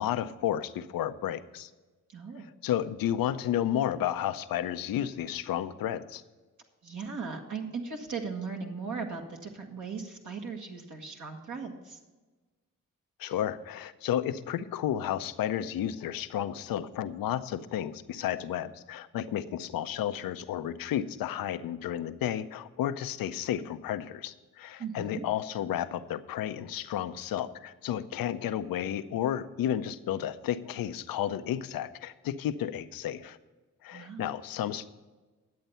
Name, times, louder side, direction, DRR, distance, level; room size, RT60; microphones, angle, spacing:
voice 1, 0.0-1.7 2.6-6.2 13.2-33.4 33.8-34.9, left 10 dB, 85° left, 12 dB, 0.6 m, -32 dB
voice 2, 2.1-2.4 6.8-12.0 24.8-25.2 33.9-34.3, right 5 dB, 60° right, 1 dB, 1.5 m, -38 dB
10.5 x 7.9 x 5.5 m, 1.2 s
cardioid pair, 50°, 33 cm